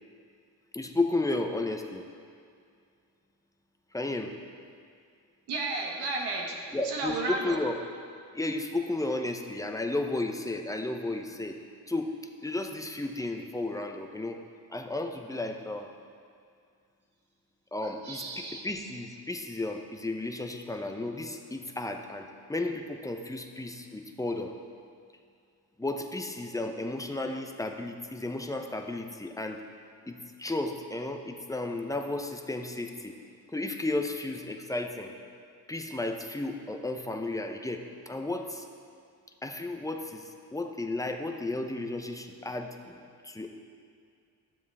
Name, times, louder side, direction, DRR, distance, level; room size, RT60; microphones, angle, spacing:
voice 1, 0.7-2.1 3.9-4.4 6.7-7.8 8.3-11.6 11.9-12.2 12.4-14.4 14.7-15.9 17.7-24.5 25.8-29.6 30.1-33.2 33.5-35.1 35.7-38.7 39.4-43.5, left 2 dB, 10° left, 4 dB, 0.8 m, -33 dB
voice 2, 5.5-6.6 6.8-7.6 18.0-18.6, right 3 dB, 80° right, -1 dB, 1.2 m, -33 dB
12.5 x 7.3 x 3.5 m, 2.3 s
cardioid pair, 75°, 39 cm